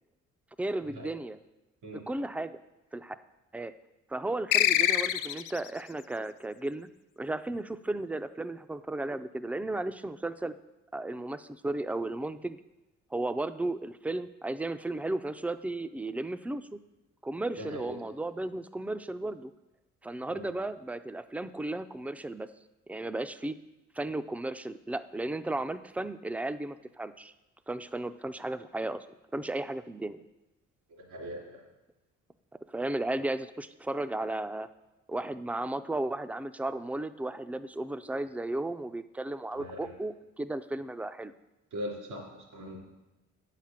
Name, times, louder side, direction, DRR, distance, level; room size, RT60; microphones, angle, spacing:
voice 1, 0.6-1.4 2.1-2.6 2.9-3.2 3.5-3.7 4.1-6.9 7.2-10.5 10.9-12.6 13.1-16.8 17.2-19.5 20.0-22.5 22.9-23.6 23.9-27.3 27.7-29.1 29.3-30.2 32.7-34.7 35.1-41.3, right 2 dB, 5° right, 12 dB, 0.4 m, -34 dB
sound 1, 4.5-5.7, left 12 dB, 90° left, 0.5 m, -25 dB
voice 2, 17.6-18.0 20.3-20.5 30.9-31.6 39.6-39.9 41.7-42.8, equal, 85° right, -1 dB, 3.3 m, -40 dB
8.5 x 5.8 x 7.5 m, 1.0 s
cardioid pair, 90°, 30 cm